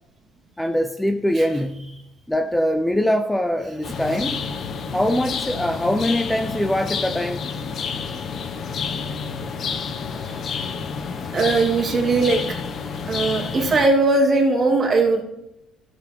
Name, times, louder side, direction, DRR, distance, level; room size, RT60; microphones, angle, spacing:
voice 1, 0.6-1.9 2.3-4.4 4.9-7.6, equal, 5° left, 8 dB, 0.6 m, -23 dB
sound 1, 3.8-13.9, left 5 dB, 50° left, 1.1 m, -29 dB
voice 2, 11.3-12.4 13.1-15.2, right 3 dB, 35° right, 2 dB, 2.5 m, -19 dB
12.5 x 6.8 x 4.5 m, 0.83 s
cardioid pair, 95°, 0 cm